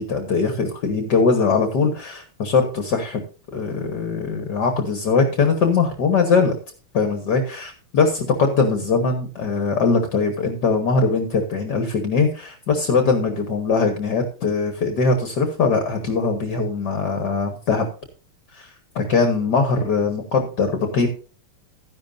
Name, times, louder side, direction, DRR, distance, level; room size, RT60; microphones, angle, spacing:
voice 1, 0.0-3.2 3.5-6.5 6.9-17.9 18.5-21.1, left 4 dB, 55° left, 6 dB, 1.9 m, -21 dB
13.5 x 10.5 x 2.6 m, 0.39 s
omnidirectional pair, 2.3 m